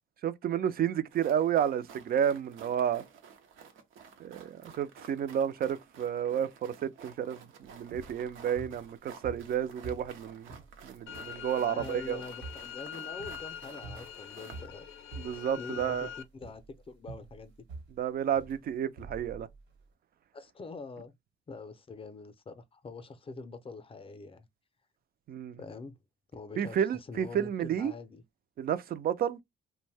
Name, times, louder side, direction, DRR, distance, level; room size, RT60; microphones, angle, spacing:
voice 1, 0.2-3.0 4.2-12.2 15.2-16.1 18.0-19.5 25.3-25.6 26.6-27.9 28.6-29.4, right 9 dB, 50° right, 0.4 m, -31 dB
sound 1, 1.1-14.7, right 6 dB, 90° right, 0.6 m, -53 dB
sound 2, 7.6-19.9, right 3 dB, 75° right, 1.1 m, -48 dB
sound 3, 11.1-16.2, left 9 dB, 80° left, 0.4 m, -44 dB
voice 2, 11.6-14.9 15.6-17.5 20.3-21.1 21.5-24.5 25.6-25.9 26.3-28.2, left 4 dB, 30° left, 0.5 m, -45 dB
2.5 x 2.1 x 3.2 m
cardioid pair, 90°, 20 cm